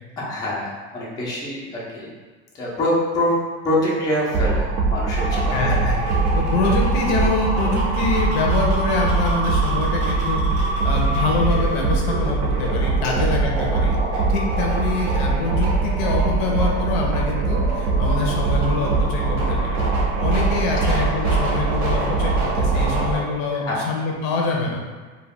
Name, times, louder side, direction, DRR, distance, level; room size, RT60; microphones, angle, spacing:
voice 1, 0.2-2.1 2.5-3.4 3.6-5.6 13.0-13.1 23.5-23.8, left 1 dB, 10° left, -5 dB, 0.4 m, -25 dB
sound 1, 4.3-23.2, right 4 dB, 70° right, 0.6 m, -22 dB
sound 2, 5.1-23.2, right 1 dB, 85° right, 0.9 m, -28 dB
voice 2, 5.5-6.0 6.3-10.4 10.8-14.0 14.3-19.8 20.2-24.8, left 3 dB, 75° left, -1 dB, 0.6 m, -25 dB
2.3 x 2.2 x 3.4 m, 1.4 s
supercardioid pair, 145°, 32 cm